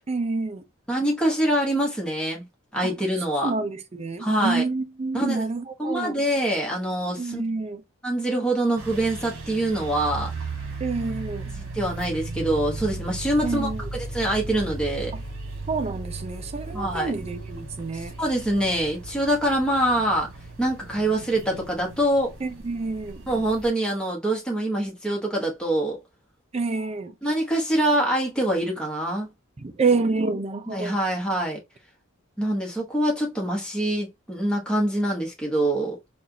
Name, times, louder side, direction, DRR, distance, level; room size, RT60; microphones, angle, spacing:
voice 1, 0.1-0.6 2.8-2.9 3.4-6.2 7.2-7.8 10.8-11.5 13.4-13.9 15.1-15.2 15.7-18.1 22.4-23.2 26.5-27.1 29.6-31.0, right 3 dB, 30° right, 0.4 m, -28 dB
voice 2, 0.9-2.4 2.7-3.5 4.2-4.6 5.1-5.5 5.8-7.4 8.0-10.3 11.5-15.1 16.7-17.1 17.9-20.3 20.6-22.3 23.3-26.0 27.2-29.3 30.7-31.6 32.4-36.0, right 1 dB, 5° left, 1.1 m, -25 dB
sound 1, 8.8-23.7, right 3 dB, 65° right, 1.3 m, -36 dB
4.4 x 2.4 x 2.7 m
head